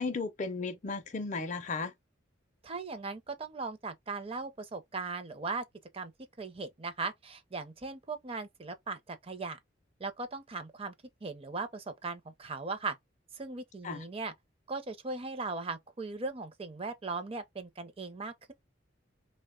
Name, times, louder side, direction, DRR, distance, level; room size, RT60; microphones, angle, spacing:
voice 1, 0.0-1.9 13.8-14.0, left 4 dB, 40° left, 0.4 m, -35 dB
voice 2, 2.6-5.6 5.9-6.1 6.4-9.6 10.0-10.9 11.2-13.0 13.3-14.3 14.7-18.5, right 3 dB, 30° right, 0.5 m, -38 dB
2.9 x 2.1 x 3.5 m
head